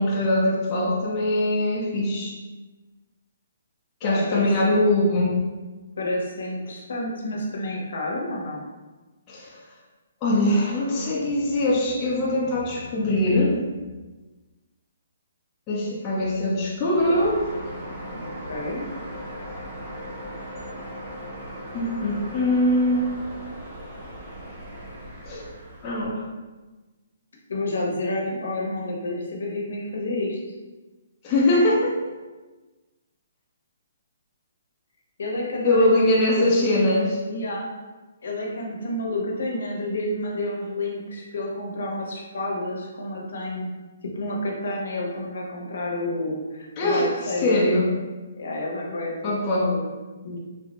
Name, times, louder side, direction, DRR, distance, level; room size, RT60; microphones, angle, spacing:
voice 1, 0.0-2.3 4.0-5.4 9.3-9.5 10.2-13.6 15.7-17.4 21.7-23.1 25.3-25.4 25.8-26.3 31.2-31.9 35.6-37.2 46.8-47.1 47.4-47.9 49.2-49.7, left 1 dB, 20° left, -6 dB, 0.6 m, -22 dB
voice 2, 4.0-4.8 6.0-8.6 18.1-18.9 27.5-30.4 35.2-36.7 37.3-37.7 38.2-43.7 44.1-47.6 48.4-49.3 49.6-49.9 50.2-50.4, left 1 dB, 75° left, -2 dB, 0.7 m, -30 dB
sound 1, 16.9-26.1, equal, 30° right, 0.6 m, -38 dB
3.3 x 2.0 x 2.9 m, 1.2 s
hypercardioid pair, 160°, 0 cm